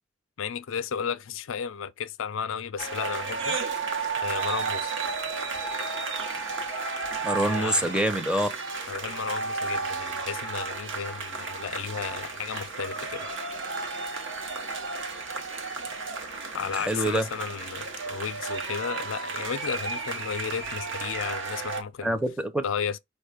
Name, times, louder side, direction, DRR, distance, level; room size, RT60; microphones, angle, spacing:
voice 1, 0.4-3.6 4.2-4.9 7.5-7.9 8.9-13.3 16.5-22.2 22.6-23.0, left 7 dB, 75° left, 0.4 m, -33 dB
sound 1, 2.8-21.8, right 4 dB, 65° right, 0.8 m, -33 dB
voice 2, 7.2-8.5 16.7-17.3 22.0-22.6, right 1 dB, 5° right, 0.6 m, -26 dB
4.9 x 2.2 x 4.8 m
head